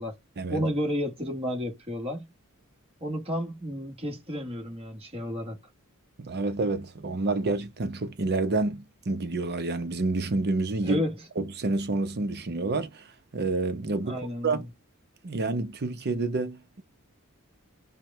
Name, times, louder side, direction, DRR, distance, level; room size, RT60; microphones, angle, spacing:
voice 1, 0.5-2.3 3.0-5.6 10.8-11.1 14.0-14.7, equal, 25° right, 1.4 m, -31 dB
voice 2, 6.2-11.0 11.4-13.1 13.3-14.7 15.2-16.8, right 3 dB, 50° right, 0.7 m, -29 dB
4.6 x 2.2 x 3.5 m
head